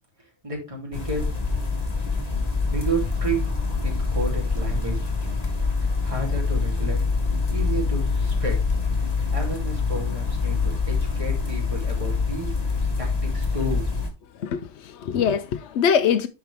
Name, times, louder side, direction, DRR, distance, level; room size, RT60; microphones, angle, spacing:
voice 1, 0.4-1.2 2.7-3.4 3.8-5.1 6.0-7.0 7.5-8.6 9.3-12.5 13.0-14.0, right 2 dB, 30° right, 2.9 m, -31 dB
sound 1, 0.9-14.1, left 4 dB, 35° left, 1.6 m, -25 dB
voice 2, 14.4-16.3, left 7 dB, 75° left, 0.9 m, -23 dB
10.5 x 4.6 x 3.4 m
omnidirectional pair, 1.2 m